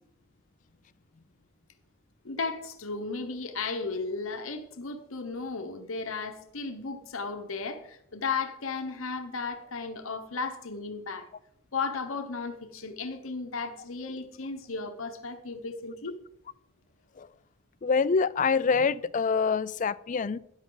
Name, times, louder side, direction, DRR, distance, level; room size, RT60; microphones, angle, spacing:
voice 1, 2.2-11.3 11.7-16.2, left 4 dB, 65° left, 1.0 m, -35 dB
voice 2, 17.8-20.4, left 5 dB, 35° left, 0.3 m, -25 dB
13.0 x 10.5 x 3.9 m
head